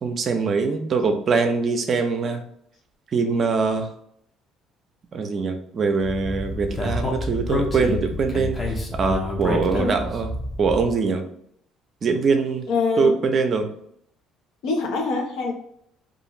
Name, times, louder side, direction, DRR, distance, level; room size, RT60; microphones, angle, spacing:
voice 1, 0.0-2.4 3.1-3.9 5.1-10.3 10.6-11.2 12.0-12.7 13.0-13.7, right 4 dB, 45° right, 6 dB, 0.5 m, -23 dB
Speech, 6.0-10.9, left 1 dB, 30° left, 0.7 m, -28 dB
voice 2, 12.7-13.2 14.6-15.5, left 4 dB, 75° left, 2 dB, 0.7 m, -24 dB
2.5 x 2.4 x 3.0 m, 0.69 s
supercardioid pair, 80°, 0 cm